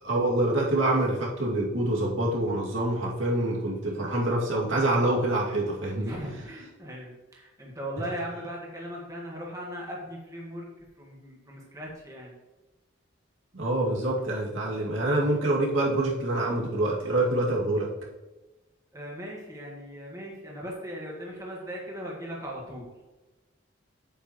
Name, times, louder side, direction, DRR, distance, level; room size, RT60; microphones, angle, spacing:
voice 1, 0.0-6.2 13.5-17.9, right 1 dB, 80° right, -4 dB, 2.3 m, -26 dB
voice 2, 6.0-10.7 11.0-12.3 18.9-22.9, equal, 15° right, -3 dB, 1.6 m, -38 dB
8.6 x 8.5 x 3.1 m, 1.1 s
head